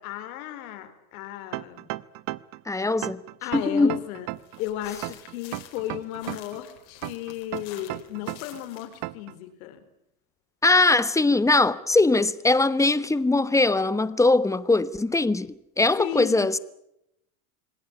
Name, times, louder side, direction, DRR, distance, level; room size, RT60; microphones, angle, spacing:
voice 1, 0.0-1.9 3.4-4.3 4.6-9.8 16.0-16.5, left 12 dB, 75° left, 4.4 m, -34 dB
sound 1, 1.5-2.6 3.0-4.6 5.0-6.6 7.0-8.6 9.0-9.3, right 20 dB, 55° right, 0.9 m, -34 dB
voice 2, 2.7-3.2 3.5-4.0 10.6-15.5 15.8-16.6, left 2 dB, 5° left, 1.1 m, -21 dB
sound 2, 4.4-9.1, left 13 dB, 60° left, 5.0 m, -48 dB
26.5 x 18.0 x 10.0 m
supercardioid pair, 120°, 42 cm